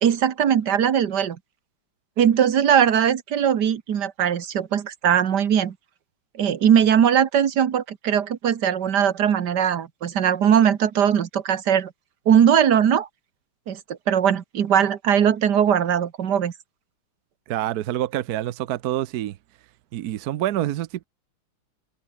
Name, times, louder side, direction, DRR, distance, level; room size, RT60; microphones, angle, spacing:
voice 1, 0.0-1.4 2.2-5.7 6.4-11.9 12.3-13.1 13.7-16.5, right 8 dB, 55° right, 1.8 m, -20 dB
voice 2, 17.5-19.4 19.9-21.0, right 13 dB, 70° right, 0.9 m, -27 dB
omnidirectional pair, 2.4 m